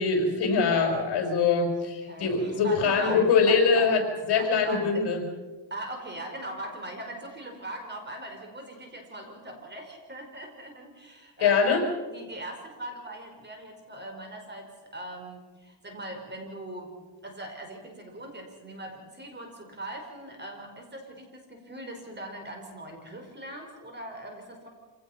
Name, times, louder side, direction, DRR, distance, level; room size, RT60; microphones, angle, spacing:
voice 1, 0.0-4.0 4.3-5.2 11.4-11.8, left 5 dB, 55° left, 3 dB, 5.5 m, -23 dB
voice 2, 2.0-3.9 4.3-5.0 5.7-11.7 12.1-16.9 17.2-24.7, right 1 dB, 20° right, 3 dB, 4.9 m, -41 dB
27.5 x 18.0 x 5.8 m, 1.2 s
cardioid pair, 125°, 47 cm